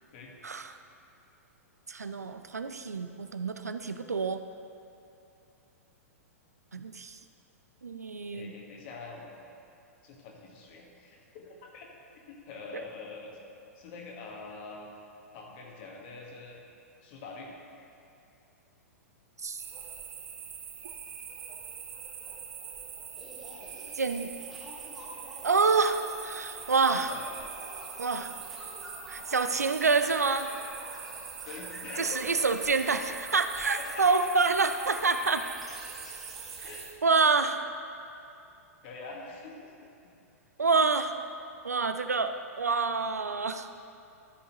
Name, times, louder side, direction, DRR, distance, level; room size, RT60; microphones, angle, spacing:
voice 1, 1.9-4.4 6.7-7.2 7.8-8.5 19.4-19.6 24.0-24.3 25.4-27.1 28.0-28.3 29.1-30.5 32.0-35.4 37.0-37.6 40.6-41.1 41.6-43.7, right 4 dB, 80° right, 9 dB, 0.4 m, -27 dB
voice 2, 8.3-9.5 10.0-11.9 12.3-13.3 13.7-14.9 15.3-16.6 17.0-17.5 27.1-27.2 31.4-32.9 33.7-34.1 36.6-36.9 38.8-39.9, left 3 dB, 45° left, -1 dB, 1.5 m, -45 dB
sound 1, 19.6-36.9, right 7 dB, 25° right, 0.8 m, -43 dB
sound 2, 23.1-36.9, equal, ahead, 1.6 m, -48 dB
13.0 x 5.6 x 3.0 m, 2.7 s
figure-of-eight pair, 105°, 8 cm